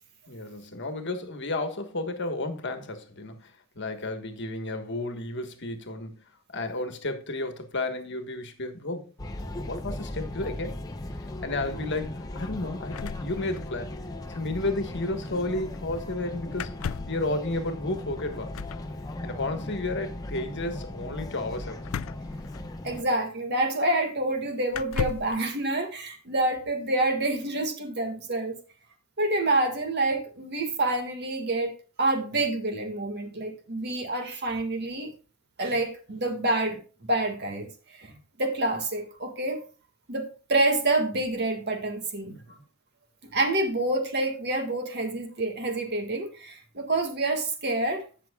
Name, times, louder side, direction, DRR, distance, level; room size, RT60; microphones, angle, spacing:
voice 1, 0.3-6.2 6.5-9.1 9.4-10.8 11.2-13.9 14.3-18.6 19.2-21.8 42.3-42.6, left 2 dB, 55° left, 1.4 m, -32 dB
sound 1, 9.2-23.0, left 1 dB, 20° left, 0.9 m, -37 dB
sound 2, 12.9-14.0 14.2-14.3 14.5-14.7 16.5-17.3 18.5-18.9 21.8-23.0 23.9-24.0 24.7-25.4, left 7 dB, 75° left, 0.4 m, -35 dB
voice 2, 22.8-28.5 29.2-35.1 35.6-36.8 37.1-37.7 38.0-39.6 40.1-42.4 43.3-48.1, right 2 dB, 55° right, 1.8 m, -27 dB
16.5 x 6.2 x 2.3 m
head